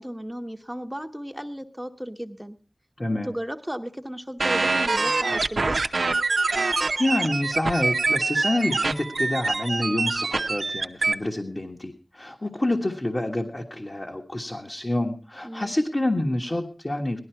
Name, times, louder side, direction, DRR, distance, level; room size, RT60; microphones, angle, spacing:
voice 1, 0.0-2.6 3.1-5.8 15.4-15.7, equal, 10° right, 6 dB, 1.1 m, -35 dB
voice 2, 3.0-3.3 7.0-17.2, left 1 dB, 40° left, 1 dB, 1.5 m, -27 dB
sound 1, 4.4-11.1, right 3 dB, 85° right, 0.7 m, -25 dB
17.5 x 12.5 x 4.6 m, 0.37 s
wide cardioid pair, 50°, 0 cm